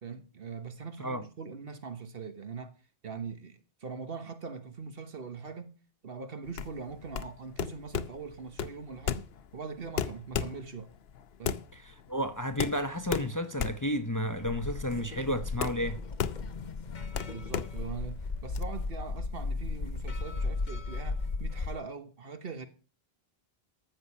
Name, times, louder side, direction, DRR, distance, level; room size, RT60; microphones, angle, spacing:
voice 1, 0.0-2.7 3.0-5.8 6.0-10.9 11.4-11.6 14.2-14.3 17.3-22.7, right 5 dB, 65° right, 1.5 m, -42 dB
sound 1, 6.5-18.6, left 8 dB, 80° left, 0.9 m, -36 dB
voice 2, 11.7-16.0, equal, 20° left, 0.6 m, -32 dB
sound 2, 14.3-21.7, left 3 dB, 50° left, 1.0 m, -36 dB
13.5 x 6.7 x 5.5 m
omnidirectional pair, 1.0 m